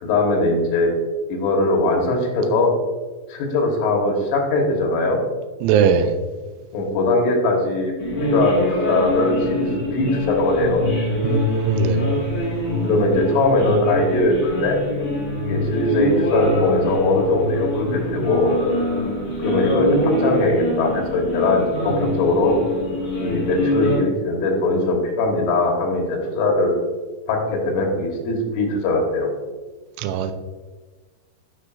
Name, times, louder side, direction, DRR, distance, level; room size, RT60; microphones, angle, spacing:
voice 1, 0.0-0.9 1.3-2.7 3.3-5.2 6.7-7.9 8.3-10.8 12.9-14.8 15.4-18.5 19.4-22.5 23.2-26.7 27.3-29.3, left 2 dB, 80° left, 3.8 m, -20 dB
voice 2, 5.6-6.1 11.2-12.0 30.0-30.3, right 7 dB, 85° right, 3.0 m, -20 dB
sound 1, 8.0-23.9, left 1 dB, 55° left, 1.1 m, -24 dB
11.5 x 5.7 x 2.5 m
omnidirectional pair, 5.5 m